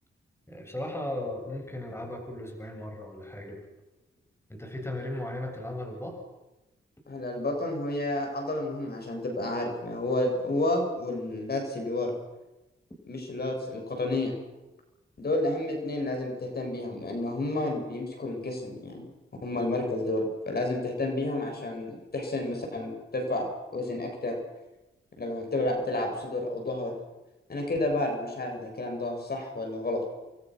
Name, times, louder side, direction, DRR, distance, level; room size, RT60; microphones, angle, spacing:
voice 1, 0.5-3.6 4.5-6.2, left 1 dB, 10° left, 2 dB, 7.0 m, -36 dB
voice 2, 7.1-12.1 13.1-14.3 15.2-19.0 19.4-23.5 23.7-24.4 25.2-26.9 27.5-30.0, left 2 dB, 50° left, 2 dB, 7.5 m, -30 dB
29.5 x 22.5 x 6.5 m, 1.0 s
cardioid pair, 70°, 21 cm